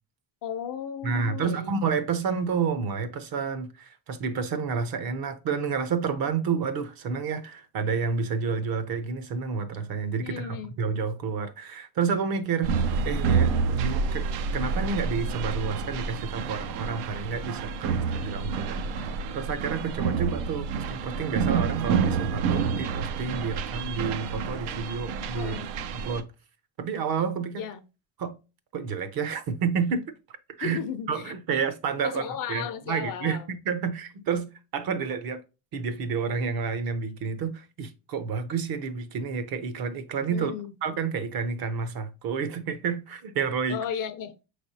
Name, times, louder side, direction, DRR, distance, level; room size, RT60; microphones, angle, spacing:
voice 1, 0.4-1.7 10.2-10.7 25.4-25.7 27.6-27.8 30.6-31.6 32.0-33.5 40.3-40.7 43.7-44.3, left 8 dB, 45° left, 0.5 m, -35 dB
voice 2, 1.0-14.3 14.5-25.6 25.9-26.3 26.8-27.7 28.2-28.3 28.7-30.8 31.1-32.2 32.5-33.4 33.7-35.4 35.7-40.5 40.8-43.8, right 5 dB, 50° right, 0.7 m, -30 dB
sound 1, 12.6-26.2, right 5 dB, 85° right, 0.7 m, -28 dB
5.3 x 3.3 x 2.7 m
cardioid pair, 125°, 48 cm